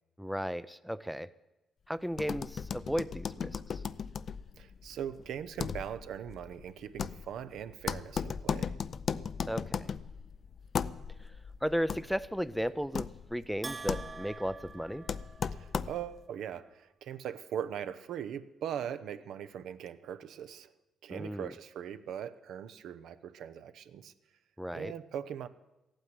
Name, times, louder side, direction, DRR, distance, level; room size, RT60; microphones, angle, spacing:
voice 1, 0.2-1.3 1.9-3.8 9.5-9.9 11.2-11.3 11.6-15.1 21.1-21.5 24.6-24.9, equal, ahead, 14 dB, 0.5 m, -35 dB
sound 1, 2.1-16.2, left 6 dB, 50° left, 0.5 m, -37 dB
voice 2, 4.6-8.7 15.5-20.7 21.0-24.1 24.7-25.5, right 9 dB, 75° right, 11 dB, 0.8 m, -40 dB
Bell, 13.6-15.8, right 4 dB, 30° right, 0.9 m, -45 dB
14.5 x 9.0 x 9.6 m, 0.99 s
cardioid pair, 90°, 0 cm